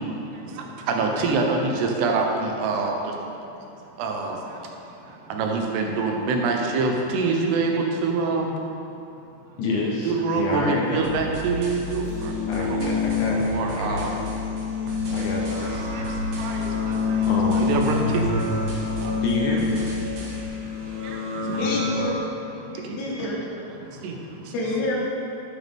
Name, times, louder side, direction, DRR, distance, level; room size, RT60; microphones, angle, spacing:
voice 1, 0.0-3.2 3.9-4.7 5.0-8.6 10.0-12.3 12.6-12.8 13.5-14.1 15.9-17.3 17.5-19.2 20.1-21.6 22.6-23.2 23.8-24.5, right 3 dB, 90° right, 2 dB, 3.1 m, -26 dB
voice 2, 9.6-11.2 12.4-14.2 15.1-15.8 17.2-17.8 19.2-19.7, left 2 dB, 65° left, -2 dB, 2.2 m, -28 dB
sound 1, 11.0-20.4, left 1 dB, 60° right, 2.2 m, -35 dB
sound 2, 12.0-22.0, left 4 dB, 75° right, 3.6 m, -27 dB
voice 3, 21.6-22.3 22.7-23.4 24.5-25.0, left 1 dB, 85° left, -4 dB, 3.9 m, -28 dB
11.0 x 9.5 x 3.6 m, 2.8 s
omnidirectional pair, 4.6 m